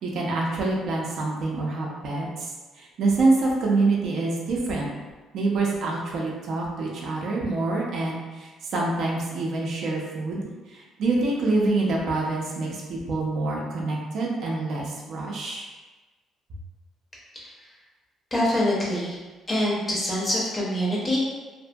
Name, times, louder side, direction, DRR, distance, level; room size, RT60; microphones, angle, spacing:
voice 1, 0.0-2.5 2.8-4.9 5.3-15.7, right 3 dB, 60° right, -2 dB, 0.5 m, -26 dB
voice 2, 18.3-19.2 19.5-21.2, left 1 dB, 20° left, -5 dB, 0.6 m, -25 dB
2.6 x 2.6 x 2.2 m, 1.2 s
cardioid pair, 165°, 0 cm